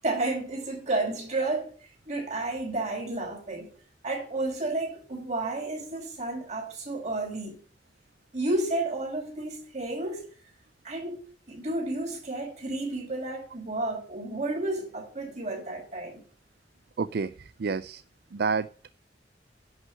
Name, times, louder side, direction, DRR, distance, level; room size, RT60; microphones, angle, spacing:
voice 1, 0.0-1.7 2.1-3.7 4.0-7.6 8.3-10.3 10.8-11.2 11.5-16.2, right 2 dB, 40° right, 5.3 m, -31 dB
voice 2, 17.0-18.0 18.3-18.7, right 5 dB, 65° right, 0.4 m, -29 dB
11.0 x 6.2 x 8.6 m
head